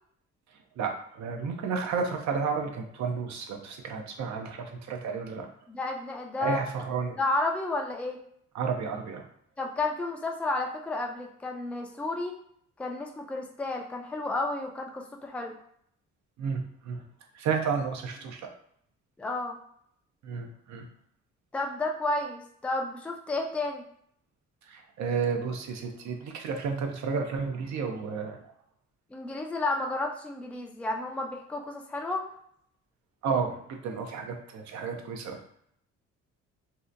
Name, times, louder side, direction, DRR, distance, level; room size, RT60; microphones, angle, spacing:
voice 1, 0.8-5.5 6.4-7.2 8.5-9.2 16.4-17.0 17.3-18.5 20.2-20.9 24.7-28.5 33.2-35.4, right 5 dB, 65° right, 4 dB, 0.6 m, -32 dB
voice 2, 5.7-6.6 7.2-8.2 9.6-12.3 12.8-15.6 19.2-19.6 21.5-23.8 29.1-32.2, left 2 dB, 5° left, 2 dB, 0.3 m, -31 dB
2.7 x 2.1 x 2.4 m, 0.66 s
cardioid pair, 90°, 30 cm